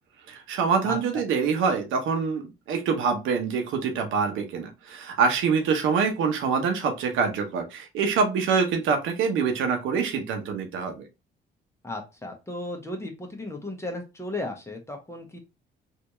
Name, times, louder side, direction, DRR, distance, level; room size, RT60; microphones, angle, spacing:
voice 1, 0.3-11.0, right 5 dB, 85° right, 5 dB, 1.0 m, -25 dB
voice 2, 0.8-1.2 11.8-15.4, left 1 dB, 15° left, 2 dB, 1.2 m, -35 dB
3.3 x 2.7 x 3.0 m, 0.25 s
cardioid pair, 90°, 20 cm